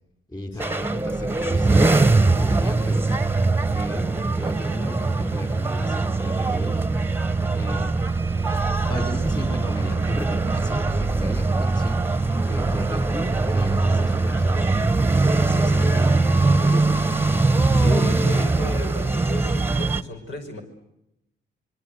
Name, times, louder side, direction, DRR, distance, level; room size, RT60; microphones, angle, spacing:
voice 1, 0.3-3.1 3.7-6.8 7.5-7.9 8.9-12.0 12.4-15.0 15.3-16.3 16.6-17.0, left 1 dB, 20° left, 6 dB, 5.1 m, -35 dB
sound 1, 0.6-20.0, right 3 dB, 10° right, 1.2 m, -21 dB
voice 2, 17.7-20.6, left 2 dB, 70° left, 4 dB, 5.9 m, -33 dB
26.5 x 23.0 x 8.2 m, 0.84 s
cardioid pair, 90°, 20 cm